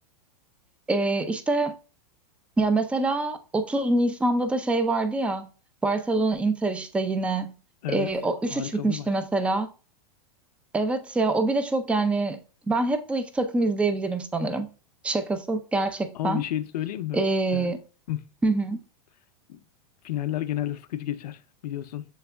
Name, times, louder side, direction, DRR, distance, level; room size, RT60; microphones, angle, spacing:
voice 1, 0.9-1.8 2.6-5.5 5.8-7.5 7.9-9.7 10.7-12.4 12.7-14.7 15.0-16.4 17.1-17.8 18.4-18.8, right 2 dB, 5° right, 0.3 m, -25 dB
voice 2, 8.5-9.1 16.1-17.2 17.5-17.7 18.1-18.2 19.5-19.6 20.0-22.0, left 12 dB, 80° left, 0.5 m, -31 dB
7.0 x 3.4 x 2.2 m
hypercardioid pair, 130°, 20 cm